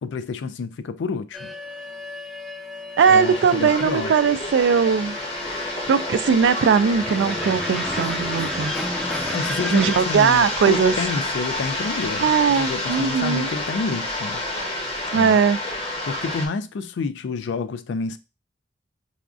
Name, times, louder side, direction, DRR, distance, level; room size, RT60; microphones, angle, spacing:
voice 1, 0.0-1.5 3.1-4.1 9.3-14.4 15.1-15.4 16.0-18.2, left 4 dB, 80° left, 0.3 m, -29 dB
sound 1, 1.3-10.0, equal, ahead, 0.4 m, -33 dB
sound 2, 3.0-16.5, left 2 dB, 35° left, 0.7 m, -29 dB
voice 2, 3.0-5.2 5.9-8.7 9.7-10.9 12.2-13.5 15.1-15.6, right 6 dB, 75° right, 0.3 m, -19 dB
4.8 x 2.4 x 2.4 m
head